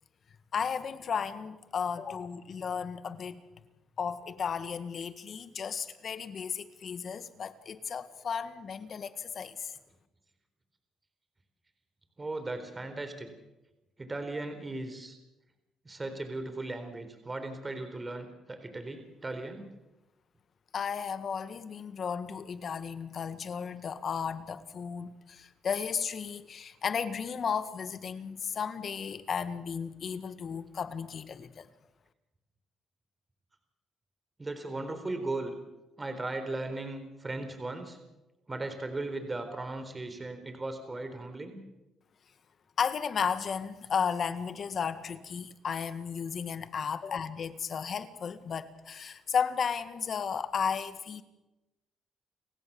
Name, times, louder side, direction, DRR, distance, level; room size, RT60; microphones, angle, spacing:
voice 1, 0.5-3.4 4.0-9.7 20.7-31.7 42.8-51.2, left 6 dB, 55° left, 11 dB, 1.8 m, -34 dB
voice 2, 12.2-13.3 14.0-15.2 15.9-19.7 34.4-35.5 36.0-38.0 38.5-41.6, right 2 dB, 25° right, 8 dB, 4.1 m, -37 dB
29.5 x 16.5 x 7.1 m, 1.0 s
cardioid pair, 75°, 0 cm